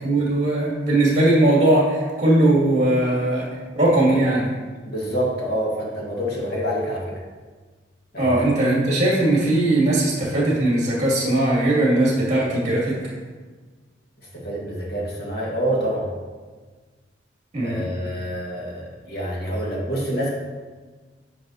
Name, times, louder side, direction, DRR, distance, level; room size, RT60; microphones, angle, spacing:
voice 1, 0.0-3.5 3.7-4.5 8.2-13.0 17.5-17.9, right 1 dB, 40° right, -5 dB, 2.3 m, -19 dB
voice 2, 4.8-7.2 8.1-8.4 14.3-16.1 17.6-20.3, equal, 55° left, -3 dB, 1.6 m, -27 dB
9.3 x 5.7 x 2.8 m, 1.4 s
head